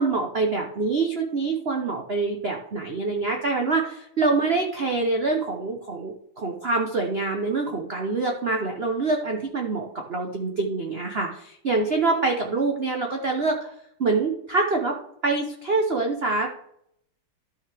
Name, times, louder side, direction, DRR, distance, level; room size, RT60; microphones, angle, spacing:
voice 1, 0.0-13.7 14.0-14.9 15.2-16.5, right 3 dB, 65° right, 2 dB, 0.6 m, -25 dB
12.5 x 5.9 x 3.4 m, 0.72 s
omnidirectional pair, 2.4 m